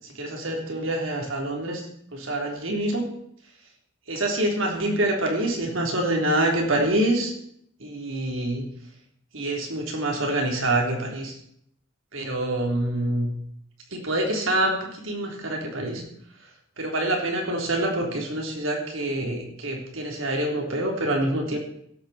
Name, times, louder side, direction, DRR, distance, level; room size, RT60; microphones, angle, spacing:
voice 1, 0.0-1.8 2.1-3.0 4.1-7.3 7.8-8.6 9.3-11.4 12.1-13.3 13.9-16.0 16.8-21.6, right 1 dB, 70° right, 1 dB, 3.7 m, -26 dB
16.5 x 12.5 x 4.4 m, 0.69 s
head